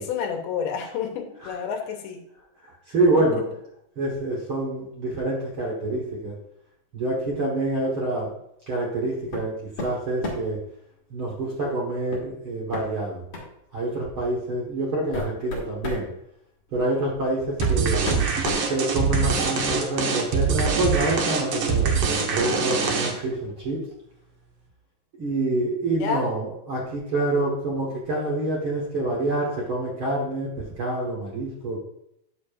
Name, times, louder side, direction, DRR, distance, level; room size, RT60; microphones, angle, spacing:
voice 1, 0.1-2.2 3.3-3.4 25.8-26.3, left 7 dB, 90° left, 4 dB, 2.8 m, -29 dB
voice 2, 2.6-3.4 4.0-6.3 6.9-8.3 8.7-10.6 11.1-13.2 13.7-16.1 16.7-18.1 18.7-23.8 25.2-30.5 30.8-31.8, right 2 dB, 50° right, -3 dB, 1.6 m, -26 dB
sound 1, 9.3-9.5 9.8-10.6 12.1-12.3 12.7-12.8 13.3-13.5 14.4-14.5 14.9-16.1 17.1-17.2 17.6-19.4, left 2 dB, 45° left, 2.9 m, -32 dB
sound 2, 17.6-23.4, right 5 dB, 75° right, 1.3 m, -24 dB
9.7 x 6.9 x 2.5 m, 0.76 s
omnidirectional pair, 4.2 m